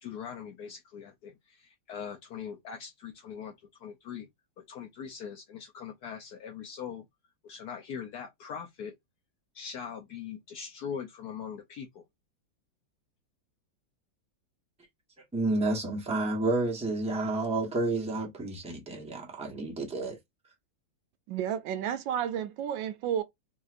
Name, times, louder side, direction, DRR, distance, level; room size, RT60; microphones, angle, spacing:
voice 1, 0.0-3.5 3.8-4.3 4.6-7.1 7.4-8.9 9.5-12.0, left 7 dB, 70° left, 0.9 m, -41 dB
voice 2, 15.3-20.2, right 2 dB, 10° right, 0.4 m, -30 dB
voice 3, 21.3-23.2, right 9 dB, 75° right, 1.2 m, -31 dB
4.0 x 2.7 x 2.4 m
omnidirectional pair, 2.2 m